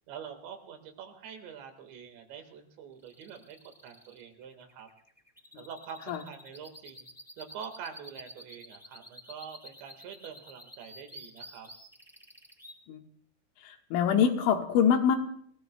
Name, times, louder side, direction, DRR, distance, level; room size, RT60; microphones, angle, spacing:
voice 1, 0.1-3.6 3.8-4.9 5.6-7.1 7.4-11.7, right 7 dB, 70° right, 6 dB, 3.9 m, -45 dB
sound 1, 3.0-12.7, equal, ahead, 3.0 m, -50 dB
voice 2, 13.6-15.2, left 8 dB, 80° left, 3 dB, 3.8 m, -24 dB
28.5 x 18.0 x 2.3 m, 0.63 s
omnidirectional pair, 5.6 m